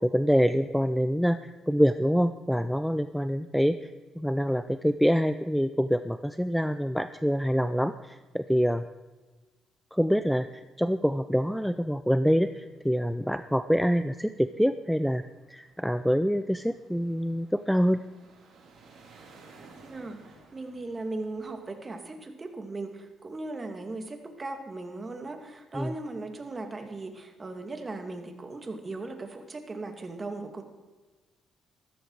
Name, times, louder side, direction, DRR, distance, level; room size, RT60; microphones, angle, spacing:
voice 1, 0.0-3.9 4.2-8.8 9.9-15.2 15.5-18.0 25.7-25.9, equal, ahead, 11 dB, 0.5 m, -26 dB
sound 1, 12.5-21.9, right 3 dB, 70° right, 4.0 m, -57 dB
voice 2, 19.8-20.2 20.5-30.6, right 2 dB, 30° right, 6 dB, 2.2 m, -38 dB
14.5 x 13.5 x 4.8 m, 1.3 s
cardioid pair, 90°, 0 cm